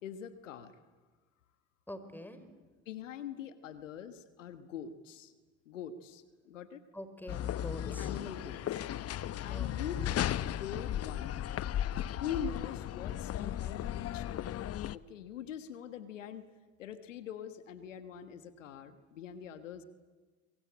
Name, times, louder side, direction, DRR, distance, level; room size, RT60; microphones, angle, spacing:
voice 1, 0.0-0.8 2.8-5.3 5.6-6.8 7.8-8.8 9.4-11.4 12.2-14.5 14.9-16.5 16.8-19.8, left 8 dB, 85° left, 11 dB, 1.4 m, -43 dB
voice 2, 1.9-2.4 6.9-8.1 9.5-9.8, left 1 dB, 5° left, 10 dB, 4.3 m, -45 dB
sound 1, 7.3-15.0, left 11 dB, 40° left, 0.8 m, -36 dB
25.0 x 23.5 x 8.7 m, 1.4 s
hypercardioid pair, 65°, 37 cm